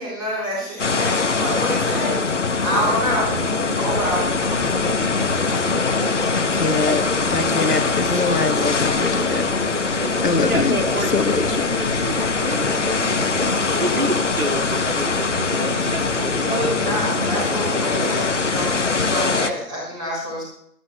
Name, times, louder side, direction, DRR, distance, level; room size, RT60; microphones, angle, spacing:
voice 1, 0.0-2.2 2.6-3.4 3.8-4.2 16.4-20.4, equal, 15° right, -5 dB, 4.0 m, -26 dB
sound 1, 0.8-19.5, left 4 dB, 50° left, 0.9 m, -22 dB
sound 2, 2.7-19.2, equal, 30° right, 0.8 m, -32 dB
voice 2, 6.3-10.8 11.1-11.6, left 3 dB, 80° left, 6 dB, 1.6 m, -24 dB
voice 3, 10.4-16.7, right 1 dB, 60° right, 0 dB, 2.3 m, -29 dB
21.0 x 13.0 x 2.3 m, 0.69 s
figure-of-eight pair, 165°, 47 cm